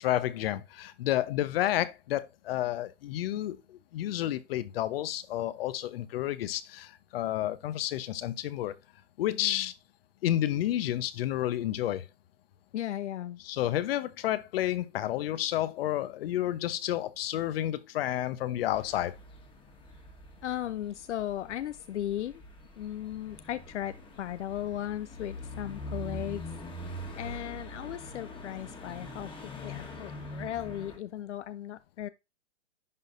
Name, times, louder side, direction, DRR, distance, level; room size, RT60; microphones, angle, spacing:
voice 1, 0.0-8.7 9.2-9.7 10.2-12.1 13.4-19.1, left 13 dB, 55° left, 0.9 m, -30 dB
voice 2, 9.3-9.7 12.7-13.4 20.4-22.4 22.8-26.4 27.2-29.3 29.6-32.1, left 12 dB, 85° left, 0.5 m, -36 dB
sound 1, 18.7-31.0, left 1 dB, 15° left, 1.5 m, -44 dB
11.0 x 4.1 x 2.6 m
hypercardioid pair, 125°, 35 cm